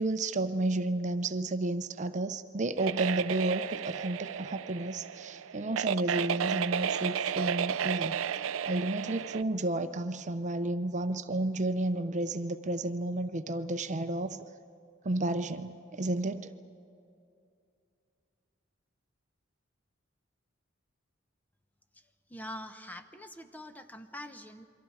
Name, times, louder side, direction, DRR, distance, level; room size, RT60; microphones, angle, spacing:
voice 1, 0.0-8.2 8.6-14.4 15.0-16.5, right 2 dB, 35° right, 10 dB, 0.6 m, -32 dB
sound 1, 2.8-9.4, right 8 dB, 85° right, 0.5 m, -33 dB
voice 2, 22.3-24.7, left 1 dB, 10° left, 9 dB, 0.7 m, -44 dB
28.5 x 23.5 x 4.8 m, 2.5 s
head